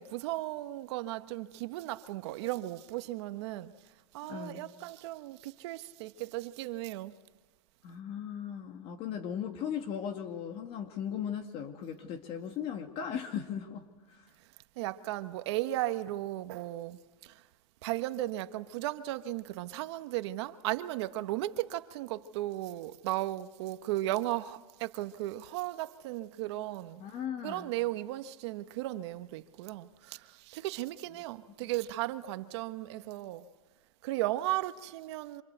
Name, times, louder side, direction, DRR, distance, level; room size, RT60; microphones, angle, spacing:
voice 1, 0.0-3.7 4.1-7.2 14.8-17.5 17.8-27.0 27.4-33.5 34.0-35.4, right 16 dB, 50° right, 1.3 m, -36 dB
voice 2, 4.3-4.6 7.8-14.2 27.0-27.7 31.6-31.7, left 8 dB, 30° left, 2.1 m, -38 dB
27.0 x 26.5 x 8.1 m
supercardioid pair, 145°, 18 cm